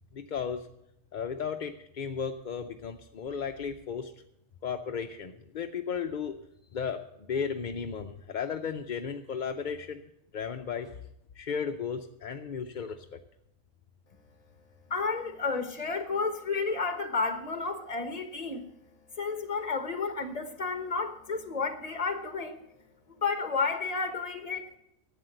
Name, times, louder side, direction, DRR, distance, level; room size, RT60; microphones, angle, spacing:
voice 1, 0.1-0.7 1.1-4.1 4.6-6.3 6.7-7.0 7.3-10.0 10.3-11.0 11.4-13.0, left 6 dB, 50° left, 5 dB, 0.6 m, -34 dB
voice 2, 14.9-18.6 19.2-22.6 23.2-24.8, left 4 dB, 30° left, 8 dB, 1.3 m, -31 dB
12.0 x 8.4 x 7.6 m, 0.78 s
omnidirectional pair, 1.4 m